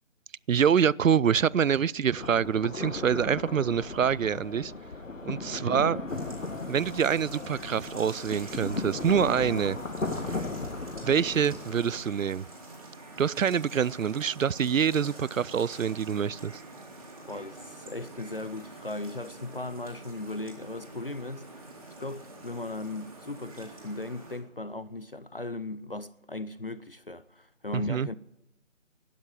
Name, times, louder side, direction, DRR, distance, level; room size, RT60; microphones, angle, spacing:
voice 1, 0.5-4.7 5.3-6.0 6.7-9.8 11.0-12.5 13.2-16.6 27.7-28.1, right 7 dB, 90° right, 0.5 m, -26 dB
sound 1, 2.2-12.0, left 3 dB, 80° left, 1.5 m, -36 dB
sound 2, 6.1-24.4, right 2 dB, 25° right, 2.9 m, -46 dB
voice 2, 17.2-21.5 22.0-28.2, left 2 dB, 45° left, 0.5 m, -37 dB
11.5 x 10.0 x 8.9 m
figure-of-eight pair, 165°, 38 cm